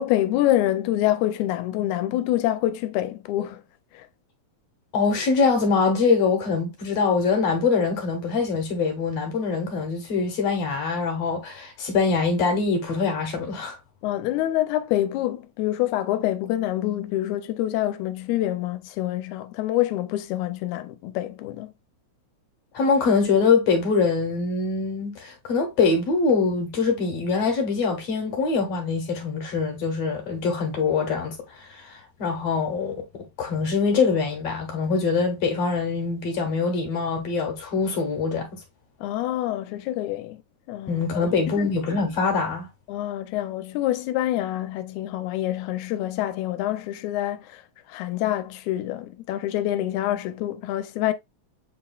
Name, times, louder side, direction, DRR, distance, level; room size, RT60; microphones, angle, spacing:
voice 1, 0.0-3.6 3.9-4.1 14.0-21.7 39.0-40.4 40.7-41.7 42.9-47.6 47.9-51.1, left 14 dB, 85° left, 2.0 m, -26 dB
voice 2, 4.9-13.8 22.7-38.6 40.9-42.7, left 4 dB, 65° left, 2.0 m, -24 dB
7.6 x 3.0 x 2.3 m
omnidirectional pair, 3.4 m